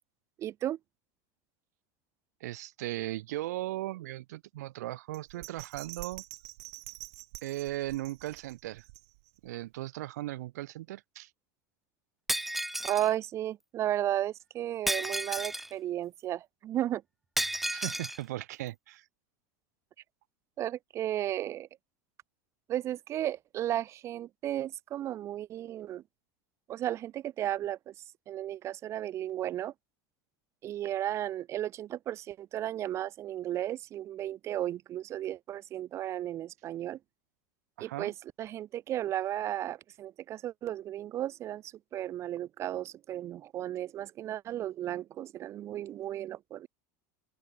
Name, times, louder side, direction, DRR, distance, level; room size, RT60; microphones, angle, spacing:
voice 1, 0.4-0.8 12.8-17.0 20.6-21.7 22.7-26.0 26.7-27.9 28.3-29.7 30.6-37.0 37.8-46.7, right 12 dB, 35° right, 6.1 m, -34 dB
voice 2, 2.4-6.2 7.4-8.8 9.4-11.3 17.7-19.1 37.8-38.1, right 16 dB, 90° right, 4.2 m, -37 dB
Bell, 5.1-9.5 9.9-10.0, right 29 dB, 60° right, 5.2 m, -47 dB
Shatter, 12.3-13.1 14.9-15.7 17.4-18.2, right 1 dB, ahead, 0.6 m, -32 dB
open air
supercardioid pair, 155°, 9 cm